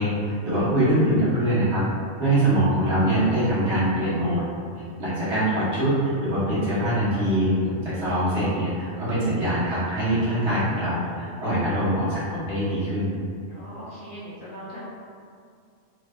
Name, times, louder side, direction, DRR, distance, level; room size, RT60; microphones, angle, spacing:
voice 1, 0.0-1.8 2.2-4.4 5.0-5.9 6.2-13.1, right 1 dB, 60° right, -11 dB, 1.4 m, -23 dB
voice 2, 13.5-14.9, equal, 60° left, -9 dB, 0.5 m, -39 dB
3.2 x 2.6 x 2.3 m, 2.2 s
omnidirectional pair, 1.3 m